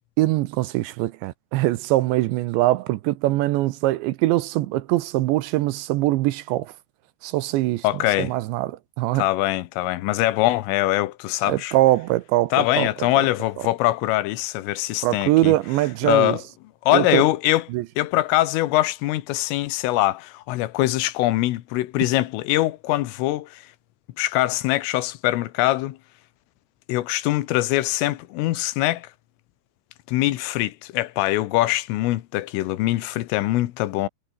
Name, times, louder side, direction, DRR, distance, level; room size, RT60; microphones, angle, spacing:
voice 1, 0.2-6.7 7.2-7.8 8.2-9.3 11.4-12.9 15.0-16.4 16.9-17.2 17.7-17.9, right 17 dB, 75° right, 2.9 m, -22 dB
voice 2, 7.8-8.3 9.2-11.7 12.5-15.5 16.0-16.4 16.8-17.6 18.0-23.6 24.2-26.0 26.9-29.1 30.1-34.1, left 16 dB, 85° left, 3.8 m, -23 dB
omnidirectional pair, 5.7 m